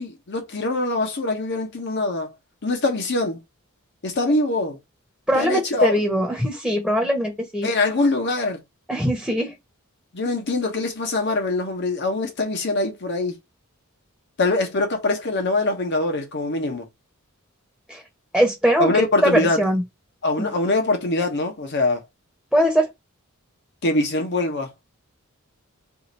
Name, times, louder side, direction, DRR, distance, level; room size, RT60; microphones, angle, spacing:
voice 1, 0.0-2.3 2.6-3.4 4.0-4.8 5.3-5.9 7.6-8.6 10.1-13.4 14.4-16.9 18.8-19.6 20.2-22.0 23.8-24.7, left 2 dB, 55° left, 1.0 m, -23 dB
voice 2, 5.3-7.7 8.9-9.5 17.9-18.0 18.3-18.9 19.2-19.8 20.4-20.5 22.5-22.9, equal, ahead, 0.9 m, -21 dB
2.8 x 2.5 x 4.1 m
head